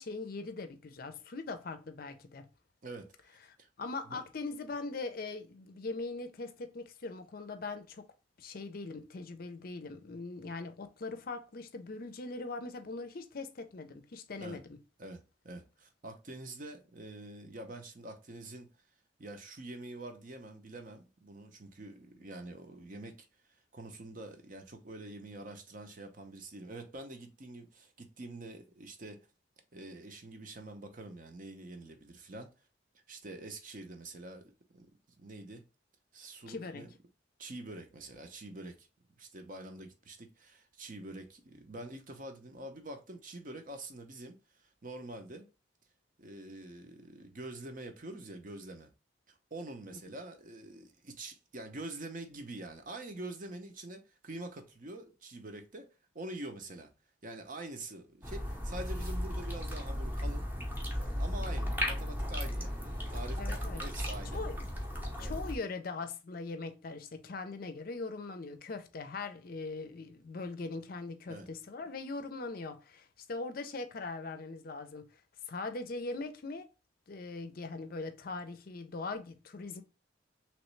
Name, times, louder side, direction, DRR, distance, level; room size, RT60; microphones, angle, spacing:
voice 1, 0.0-2.5 3.8-8.0 8.4-14.8 36.5-36.8 63.4-63.8 64.3-64.7 65.2-75.0 75.5-76.7 77.1-79.8, left 3 dB, 50° left, 0.5 m, -41 dB
voice 2, 2.8-3.7 4.0-4.3 14.4-14.6 15.0-18.7 19.2-29.2 29.7-32.5 33.1-34.9 35.2-35.6 36.1-36.9 37.4-38.9 39.2-45.5 46.2-48.9 49.3-56.9 57.2-60.5 60.9-64.4 65.2-65.4 71.3-71.5, right 2 dB, 45° right, 0.7 m, -46 dB
sound 1, 58.2-65.6, equal, 10° right, 0.7 m, -35 dB
3.1 x 3.0 x 3.1 m
head